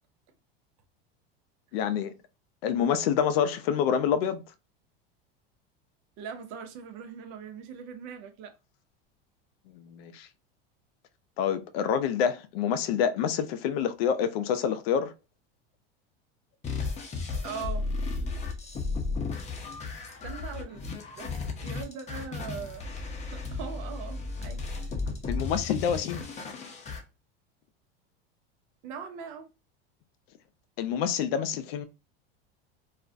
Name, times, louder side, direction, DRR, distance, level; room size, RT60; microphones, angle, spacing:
voice 1, 1.7-2.1 2.6-4.4 9.7-10.3 11.4-15.1 25.3-26.3 30.8-31.9, left 8 dB, 75° left, 0.5 m, -27 dB
voice 2, 6.2-8.5 17.4-17.9 20.2-20.8 21.1-24.6 28.8-29.5, right 6 dB, 65° right, 0.6 m, -41 dB
sound 1, 16.6-27.0, left 3 dB, 25° left, 0.6 m, -34 dB
2.4 x 2.1 x 2.4 m
supercardioid pair, 105°, 30 cm